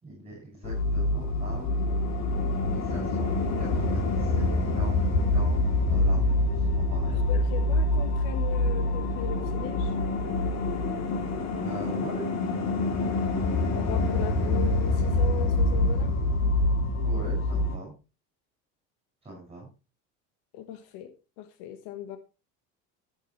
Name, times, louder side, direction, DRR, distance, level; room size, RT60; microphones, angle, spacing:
voice 1, 0.0-1.7 2.6-3.3 3.6-5.0 5.3-7.3 11.5-12.3 17.0-17.9 19.2-19.7, right 2 dB, 15° right, -1 dB, 6.0 m, -41 dB
sound 1, 0.6-17.8, left 2 dB, 50° left, 3.0 m, -26 dB
voice 2, 7.3-9.9 13.7-16.1 20.5-22.2, left 9 dB, 75° left, 9 dB, 1.4 m, -38 dB
18.0 x 7.1 x 3.2 m, 0.31 s
supercardioid pair, 100°, 35 cm